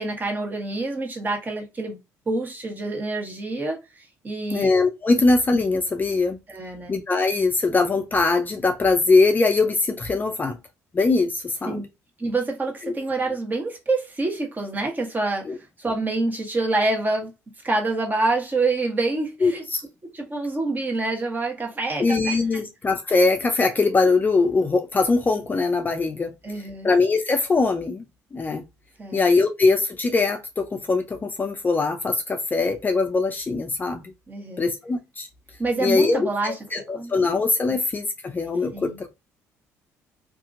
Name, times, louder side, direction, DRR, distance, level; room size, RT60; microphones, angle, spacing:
voice 1, 0.0-2.0 2.3-3.8 4.2-4.7 6.5-6.9 11.7-11.8 12.2-15.5 15.8-17.3 17.6-19.6 20.1-22.6 26.4-26.9 29.0-29.2 34.3-34.7 35.6-36.5 36.9-37.1 37.7-37.8 38.7-39.0, right 2 dB, 25° right, 1.2 m, -26 dB
voice 2, 4.5-6.4 6.9-10.6 10.9-11.8 12.8-12.9 15.5-15.6 19.4-19.8 22.0-28.1 28.3-28.6 29.1-34.1 34.6-35.3 35.8-39.1, left 3 dB, 30° left, 0.5 m, -22 dB
2.7 x 2.6 x 2.5 m
supercardioid pair, 70°, 7 cm